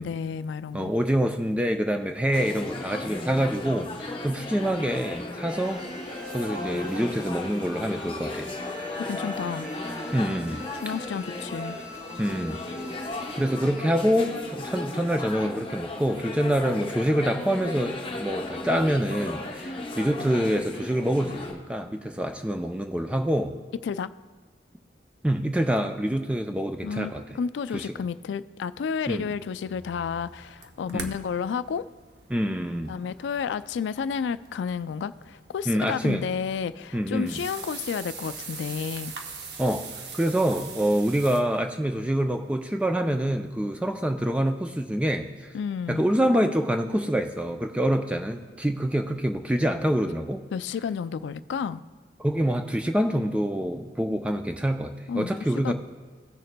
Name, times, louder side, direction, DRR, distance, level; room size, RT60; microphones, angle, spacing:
voice 1, 0.0-0.9 9.0-9.7 10.8-11.8 23.8-24.1 26.8-31.8 32.9-39.1 45.5-46.1 50.5-51.8 55.1-55.3 55.6-55.7, left 6 dB, 80° left, 15 dB, 0.3 m, -31 dB
voice 2, 0.7-5.8 6.3-8.5 10.1-10.6 12.2-12.6 13.3-23.5 25.2-27.2 27.7-27.9 29.1-29.3 30.9-31.1 32.3-33.0 35.7-36.2 36.9-37.4 39.6-39.9 40.1-45.3 45.9-50.4 52.2-55.7, equal, 5° right, 5 dB, 0.3 m, -26 dB
sound 1, 2.3-21.5, left 2 dB, 30° left, 0.9 m, -35 dB
sound 2, 5.5-15.4, left 2 dB, 25° right, 2.1 m, -42 dB
sound 3, 29.7-41.4, right 5 dB, 70° right, 0.8 m, -43 dB
16.5 x 6.6 x 2.2 m, 1.5 s
head